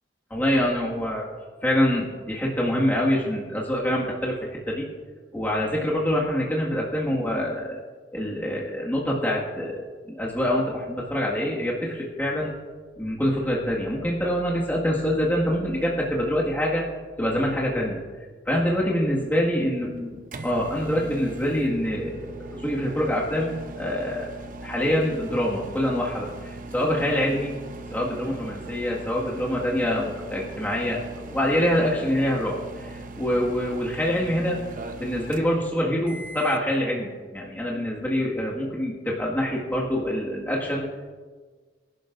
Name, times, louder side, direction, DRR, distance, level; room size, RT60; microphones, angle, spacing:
voice 1, 0.3-1.3 1.6-4.9 5.3-7.8 8.1-12.5 13.0-16.9 17.2-18.0 18.5-20.1 20.4-24.3 24.6-27.6 27.9-34.6 35.0-40.9, equal, 10° left, -4 dB, 1.8 m, -25 dB
sound 1, 19.7-36.7, right 2 dB, 45° right, 0.8 m, -40 dB
25.0 x 11.5 x 2.6 m, 1.5 s
head